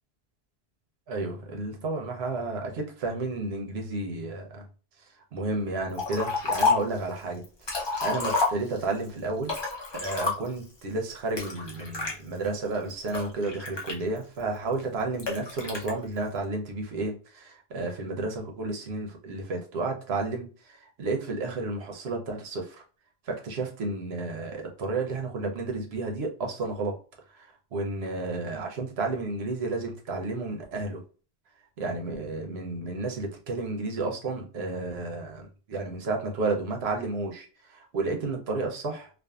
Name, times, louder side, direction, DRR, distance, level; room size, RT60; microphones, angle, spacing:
voice 1, 1.1-4.7 5.3-7.4 7.7-9.5 9.9-22.8 23.2-27.0 27.3-31.0 31.8-39.1, right 3 dB, 80° right, 2 dB, 0.9 m, -32 dB
Liquid, 6.0-7.0 7.4-9.0 9.4-10.7 11.4-12.1 12.7-14.4 15.2-15.9, left 4 dB, 30° left, 0.6 m, -29 dB
2.5 x 2.4 x 2.3 m, 0.38 s
omnidirectional pair, 1.0 m